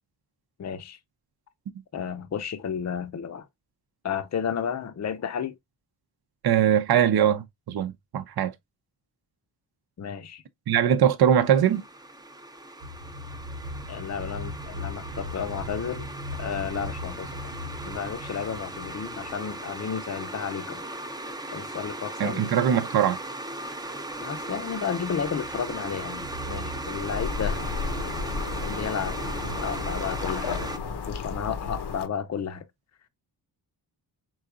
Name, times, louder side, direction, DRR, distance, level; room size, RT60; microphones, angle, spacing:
voice 1, 0.6-1.0 1.9-3.5 4.0-5.5 10.0-10.4 13.9-16.1 16.4-17.4 17.8-20.8 21.5-22.5 24.2-27.6 28.6-29.2 29.6-30.7 31.1-32.6, left 7 dB, 40° left, 0.7 m, -32 dB
voice 2, 6.4-8.5 10.7-11.8 22.2-23.2, right 9 dB, 60° right, 0.7 m, -21 dB
sound 1, 11.4-30.8, right 1 dB, 10° right, 0.6 m, -37 dB
sound 2, 12.8-20.5 24.3-30.8, equal, 85° right, 1.0 m, -40 dB
sound 3, 27.0-32.1, left 5 dB, 70° left, 0.9 m, -33 dB
4.7 x 3.9 x 2.3 m
wide cardioid pair, 110°, 42 cm